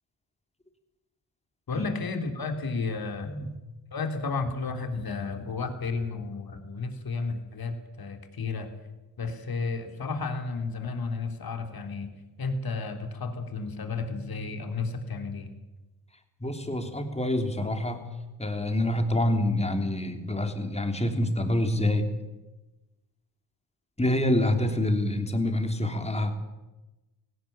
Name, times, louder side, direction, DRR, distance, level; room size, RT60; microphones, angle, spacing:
voice 1, 1.7-3.3 3.9-8.7 9.2-12.1 12.4-15.5, left 4 dB, 50° left, 6 dB, 3.6 m, -32 dB
voice 2, 16.4-18.1 18.4-22.1 24.0-26.4, left 1 dB, 15° left, 6 dB, 3.4 m, -26 dB
18.0 x 16.5 x 8.8 m, 1.1 s
cardioid pair, 70°, 47 cm